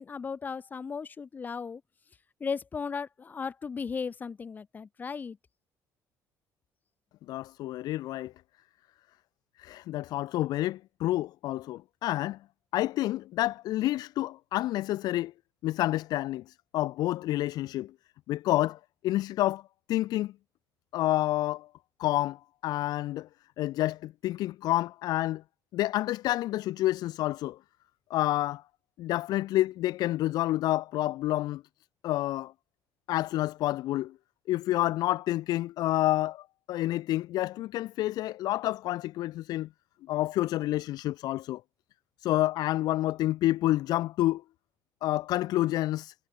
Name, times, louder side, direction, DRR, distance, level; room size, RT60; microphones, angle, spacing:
voice 1, 0.0-1.8 2.4-5.4, left 5 dB, 25° left, 2.6 m, -36 dB
voice 2, 7.3-8.3 9.6-12.4 12.7-15.3 15.6-17.9 18.3-19.6 19.9-20.3 20.9-21.7 22.0-23.3 23.6-25.4 25.7-27.6 28.1-28.6 29.0-31.6 32.0-32.5 33.1-34.1 34.5-39.7 40.1-41.6 42.2-44.4 45.0-46.1, left 15 dB, 65° left, 1.6 m, -29 dB
cardioid pair, 155°, 7 cm